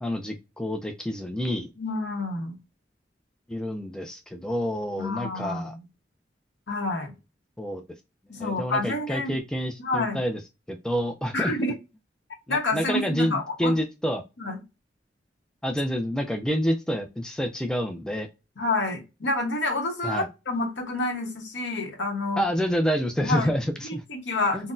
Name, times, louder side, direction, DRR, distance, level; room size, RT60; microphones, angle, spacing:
voice 1, 0.0-1.7 3.5-5.8 7.6-7.8 8.4-10.4 10.7-11.5 12.5-14.2 15.6-18.3 20.0-20.3 22.4-24.0 24.5-24.6, equal, 5° left, 0.4 m, -28 dB
voice 2, 1.8-2.6 5.0-5.8 6.7-7.1 8.3-9.4 9.8-10.2 11.3-11.7 12.5-13.7 14.4-14.6 18.6-22.4 23.2-23.5 24.1-24.7, left 2 dB, 80° left, 1.0 m, -28 dB
3.9 x 2.1 x 2.5 m
head